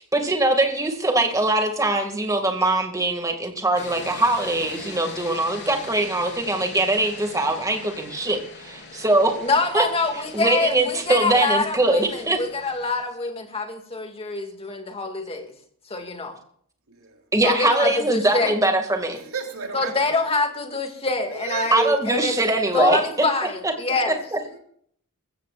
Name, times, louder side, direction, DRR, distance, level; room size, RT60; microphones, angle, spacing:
voice 1, 0.0-9.4 9.7-9.9 10.3-12.4 17.3-19.2 21.7-23.0 23.6-23.7 24.1-24.4, right 2 dB, 15° right, 4 dB, 2.2 m, -22 dB
sound 1, 3.7-13.0, left 3 dB, 55° left, 3.8 m, -41 dB
voice 2, 4.9-5.3 16.9-17.2 19.1-20.2 21.3-22.1 24.5-24.6, right 5 dB, 75° right, 2 dB, 3.3 m, -35 dB
voice 3, 9.4-15.5 15.9-16.4 17.4-18.6 19.7-22.4 22.7-24.2, left 3 dB, 25° left, 5 dB, 2.2 m, -25 dB
20.5 x 16.0 x 2.5 m, 0.63 s
head